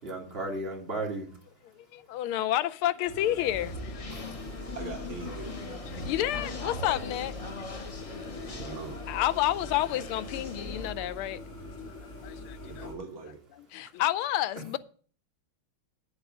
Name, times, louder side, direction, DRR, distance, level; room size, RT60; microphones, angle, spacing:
voice 1, 0.0-1.3 4.1-4.7, right 2 dB, 25° right, 2.7 m, -36 dB
voice 2, 1.9-4.1 5.9-7.7 8.3-8.5 9.1-11.4 12.2-12.9 13.5-14.8, left 13 dB, 80° left, 1.5 m, -30 dB
sound 1, 3.1-12.9, left 1 dB, 40° left, 3.2 m, -43 dB
sound 2, 3.5-10.9, left 3 dB, 60° left, 0.3 m, -40 dB
voice 3, 4.7-5.6 8.4-9.0 12.7-13.4, right 4 dB, 70° right, 2.3 m, -41 dB
9.0 x 8.1 x 5.2 m
omnidirectional pair, 2.4 m